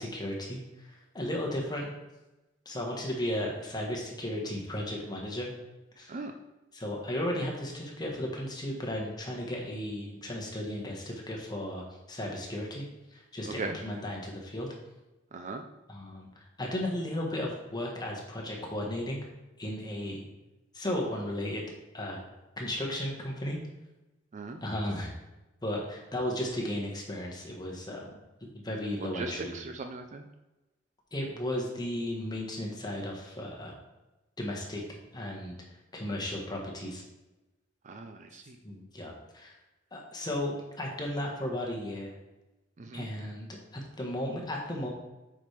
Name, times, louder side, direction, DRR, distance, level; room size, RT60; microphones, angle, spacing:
voice 1, 0.0-1.9 2.6-5.5 6.0-6.2 6.7-12.8 13.1-14.7 15.9-16.3 16.6-19.3 19.6-20.3 20.7-21.6 21.9-22.2 22.6-23.6 24.6-25.1 25.6-28.1 28.4-29.6 31.1-33.8 34.4-35.6 35.9-37.0 38.6-39.5 39.9-42.1 42.9-44.9, left 1 dB, 20° left, -1 dB, 1.3 m, -35 dB
voice 2, 13.5-13.8 15.3-15.6 24.3-24.6 28.8-30.3 37.8-38.6 42.8-43.1, right 3 dB, 40° right, 5 dB, 0.4 m, -39 dB
7.1 x 5.0 x 3.3 m, 1.0 s
head